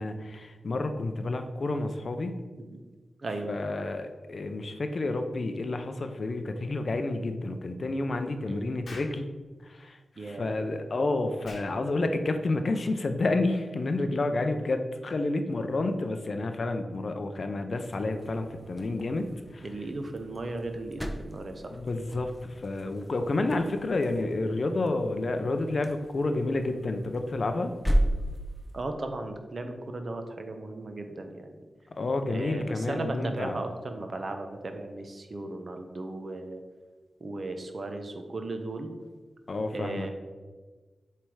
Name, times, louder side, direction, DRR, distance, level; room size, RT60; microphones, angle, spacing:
voice 1, 0.0-2.4 3.5-9.3 9.6-19.6 21.7-27.7 31.9-33.6 39.5-40.1, left 2 dB, 45° left, 7 dB, 0.5 m, -30 dB
Explosion, 8.8-9.2 11.4-11.7, left 2 dB, 65° left, 1.0 m, -45 dB
voice 2, 10.2-10.6 15.4-15.7 19.6-21.7 28.7-31.7 32.3-36.6 37.2-38.9 39.7-40.1, right 2 dB, 40° right, 6 dB, 0.6 m, -36 dB
sound 1, 17.7-28.9, equal, ahead, 0.6 m, -35 dB
7.3 x 3.3 x 4.7 m, 1.4 s
wide cardioid pair, 150°, 0 cm